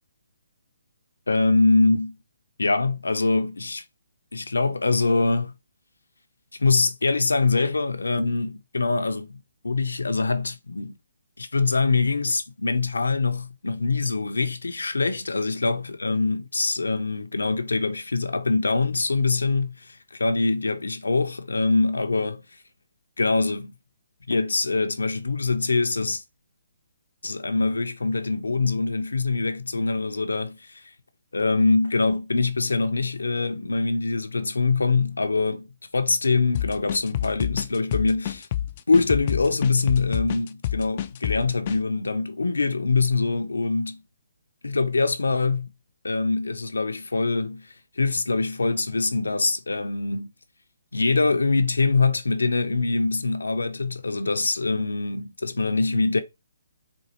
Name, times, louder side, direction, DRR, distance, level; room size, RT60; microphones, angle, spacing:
voice 1, 1.3-2.2 2.6-3.8 4.3-5.5 6.6-9.4 9.6-10.9 11.4-22.4 23.2-23.7 24.3-26.2 27.2-30.8 31.3-35.7 35.9-38.5 38.9-44.0 44.6-45.7 46.0-47.7 48.0-50.3 50.9-56.2, left 3 dB, 85° left, 0.6 m, -24 dB
sound 1, 36.5-41.8, left 12 dB, 40° left, 0.3 m, -28 dB
4.3 x 2.3 x 2.9 m
figure-of-eight pair, 145°, 0 cm